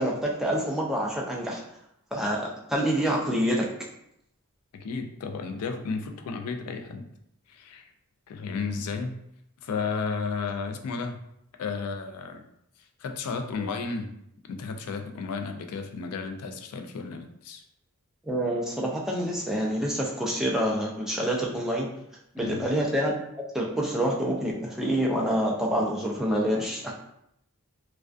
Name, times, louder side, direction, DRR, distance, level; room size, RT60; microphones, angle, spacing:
voice 1, 0.0-1.6 2.1-3.7 18.2-21.9 22.3-23.2 23.5-26.9, equal, ahead, -2 dB, 0.3 m, -27 dB
voice 2, 4.7-7.1 7.5-7.9 8.3-9.2 9.6-11.2 11.6-12.4 13.0-14.1 14.5-17.6 22.4-22.7, left 4 dB, 90° left, 6 dB, 0.4 m, -33 dB
2.4 x 2.2 x 2.4 m, 0.76 s
head